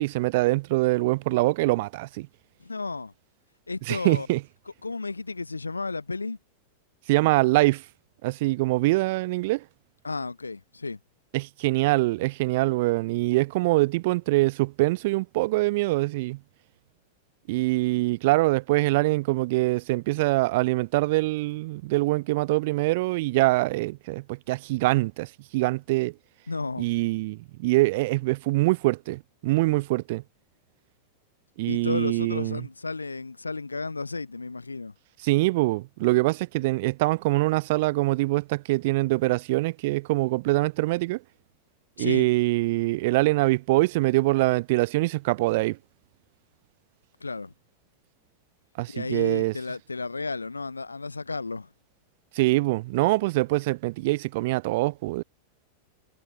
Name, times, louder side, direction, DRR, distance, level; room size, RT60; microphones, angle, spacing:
voice 1, 0.0-2.3 3.9-4.4 7.1-7.8 8.2-9.6 11.3-16.4 17.5-26.1 26.8-30.2 31.6-32.6 35.2-41.2 42.0-45.8 48.8-49.5 52.3-55.2, right 21 dB, 50° right, 0.7 m, -24 dB
voice 2, 2.6-3.1 3.7-4.3 4.8-6.4 10.0-11.0 26.5-26.9 31.7-34.9 42.0-42.3 47.2-47.5 48.9-51.7, left 3 dB, 80° left, 6.1 m, -33 dB
figure-of-eight pair, 90°, 0 cm